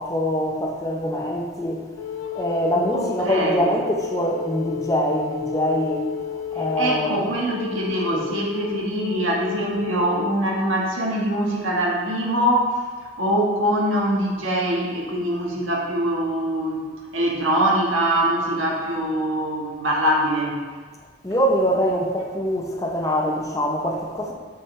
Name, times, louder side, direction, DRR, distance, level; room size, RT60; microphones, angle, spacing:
voice 1, 0.0-1.8 2.3-6.0 6.3-7.3 8.1-8.3 21.2-24.3, equal, 15° left, 0 dB, 0.6 m, -24 dB
Wind instrument woodwind instrument, 2.0-10.4, left 9 dB, 90° left, 0.4 m, -33 dB
voice 2, 2.9-3.7 6.8-12.7 13.0-16.9 17.1-20.6 23.0-23.1, right 1 dB, 85° right, -2 dB, 1.4 m, -23 dB
7.3 x 5.4 x 3.2 m, 1.5 s
head